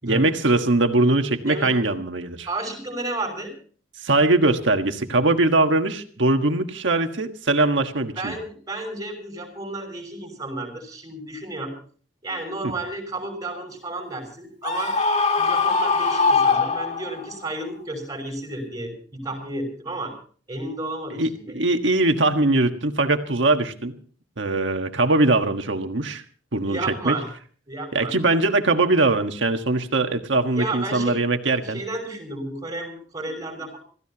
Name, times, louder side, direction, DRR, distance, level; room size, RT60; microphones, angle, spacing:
voice 1, 0.0-2.5 4.0-8.3 21.1-23.9 24.4-26.2 26.5-26.8 27.0-27.2 27.9-31.8, right 2 dB, 80° right, 6 dB, 1.5 m, -21 dB
voice 2, 2.5-3.5 8.1-11.7 12.2-14.9 15.4-20.1 20.5-21.5 26.7-27.3 27.7-28.1 30.5-31.2 31.5-33.8, right 2 dB, 20° right, 4 dB, 6.0 m, -32 dB
Screaming, 14.6-17.3, left 4 dB, 35° left, 1.8 m, -21 dB
26.5 x 15.5 x 2.9 m, 0.43 s
head